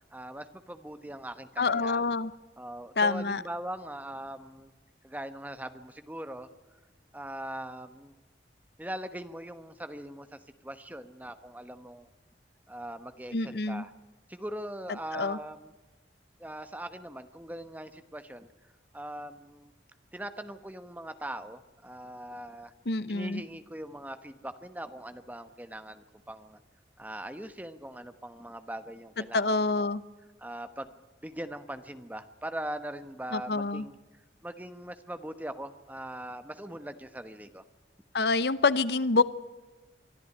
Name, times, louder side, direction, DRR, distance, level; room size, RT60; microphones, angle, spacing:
voice 1, 0.1-2.1 2.6-4.7 5.0-6.5 7.1-8.1 8.8-10.4 10.6-12.1 12.7-13.9 14.3-15.7 16.4-18.5 18.9-19.7 20.1-22.7 23.1-26.6 27.0-30.0 30.4-30.9 31.2-34.0 34.4-37.6, right 1 dB, 10° right, 10 dB, 1.1 m, -41 dB
voice 2, 1.6-2.3 3.0-3.4 13.3-13.8 15.1-15.4 22.9-23.4 29.3-30.0 33.3-33.8 38.1-39.2, left 3 dB, 65° left, 16 dB, 0.8 m, -26 dB
24.0 x 13.0 x 9.8 m, 1.2 s
head